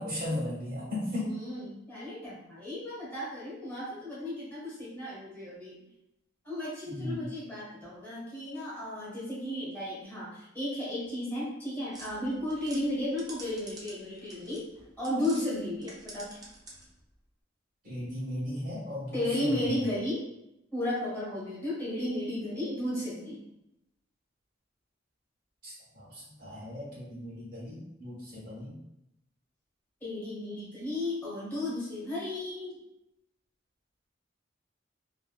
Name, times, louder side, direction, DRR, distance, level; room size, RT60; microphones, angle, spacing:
voice 1, 0.0-1.3 6.9-7.2 17.8-19.8 25.6-28.7, left 1 dB, 50° right, -7 dB, 1.3 m, -36 dB
voice 2, 1.2-5.8 6.4-14.6 15.0-16.4 19.1-20.2 20.7-23.4 30.0-32.8, left 1 dB, 10° left, -9 dB, 1.4 m, -34 dB
sound 1, 11.9-15.4 15.8-17.0, right 1 dB, 20° right, 0.6 m, -48 dB
2.9 x 2.7 x 2.3 m, 0.85 s
head